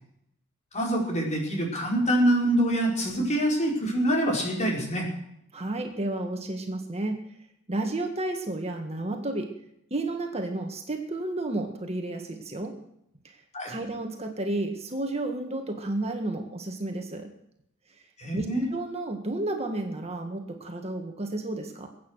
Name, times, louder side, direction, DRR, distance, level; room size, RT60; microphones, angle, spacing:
voice 1, 0.7-5.1 13.5-13.7 18.2-18.6, right 1 dB, 35° left, 0 dB, 4.8 m, -25 dB
voice 2, 5.5-7.2 7.7-9.5 9.9-12.7 13.2-13.4 13.7-17.3 18.3-21.9, right 2 dB, 30° right, 4 dB, 1.8 m, -32 dB
22.0 x 9.2 x 6.5 m, 0.76 s
head